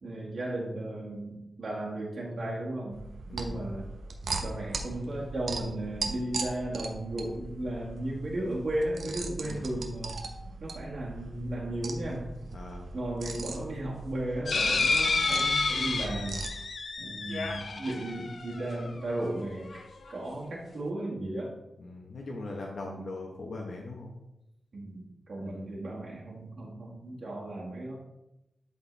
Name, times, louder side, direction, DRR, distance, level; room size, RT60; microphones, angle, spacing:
voice 1, 0.0-3.0 3.3-3.9 4.4-10.2 10.6-12.3 12.9-16.5 17.0-19.7 20.1-21.5 22.9-23.0 24.7-28.0, right 1 dB, 55° right, -5 dB, 1.8 m, -35 dB
sound 1, 2.9-16.5, right 3 dB, 80° right, 0.9 m, -39 dB
voice 2, 3.3-3.6 9.4-9.7 12.5-12.9 21.8-24.1 25.4-25.7, left 2 dB, 65° left, 0 dB, 1.1 m, -40 dB
sound 2, 14.5-19.1 19.7-19.8 20.1-20.2, left 4 dB, 50° left, 0.7 m, -30 dB
12.0 x 4.2 x 3.4 m, 0.89 s
wide cardioid pair, 175°, 0 cm